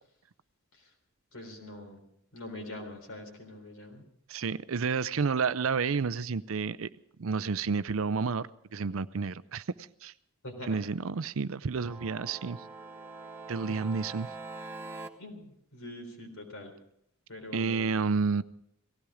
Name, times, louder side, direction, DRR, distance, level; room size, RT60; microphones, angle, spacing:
voice 1, 1.3-2.0 2.3-4.1 10.4-10.9 13.7-13.8 15.2-16.7 17.3-17.9, left 1 dB, 65° left, 3 dB, 3.9 m, -44 dB
voice 2, 4.3-6.9 7.2-10.1 10.7-12.6 13.5-14.3 17.5-18.4, right 5 dB, 65° right, 16 dB, 0.5 m, -30 dB
sound 1, 11.8-15.1, right 3 dB, 10° right, 1.3 m, -43 dB
18.0 x 16.0 x 5.0 m, 0.72 s
head